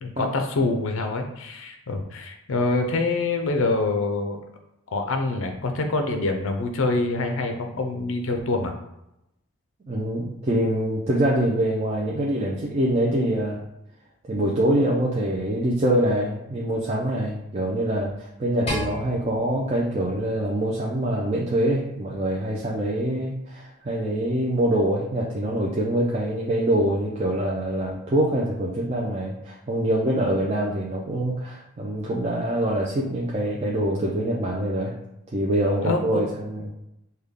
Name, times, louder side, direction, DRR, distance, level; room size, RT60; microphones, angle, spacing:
voice 1, 0.0-4.4 4.9-8.7 35.8-36.2, left 3 dB, 60° left, 5 dB, 0.5 m, -25 dB
voice 2, 9.9-13.6 14.3-34.9 35.3-36.7, right 1 dB, 30° right, -3 dB, 0.3 m, -24 dB
sound 1, 18.7-21.0, left 1 dB, 25° left, 0.8 m, -35 dB
3.3 x 2.2 x 3.6 m, 0.87 s
head